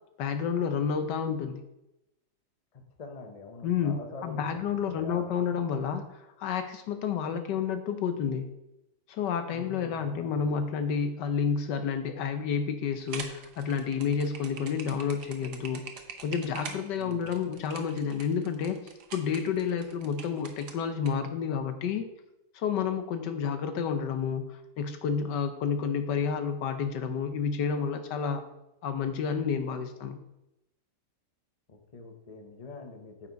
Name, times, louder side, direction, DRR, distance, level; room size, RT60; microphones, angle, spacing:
voice 1, 0.2-1.6 3.6-4.0 4.2-8.5 9.1-15.8 16.2-18.8 19.1-22.1 22.5-28.4 28.8-30.2, left 6 dB, 80° left, 8 dB, 1.4 m, -30 dB
voice 2, 2.7-5.5 9.5-10.5 17.0-17.5 31.7-33.3, left 3 dB, 30° left, 4 dB, 0.8 m, -45 dB
sound 1, 13.0-21.1, right 6 dB, 70° right, 1.4 m, -44 dB
9.3 x 5.9 x 4.0 m, 0.89 s
omnidirectional pair, 1.9 m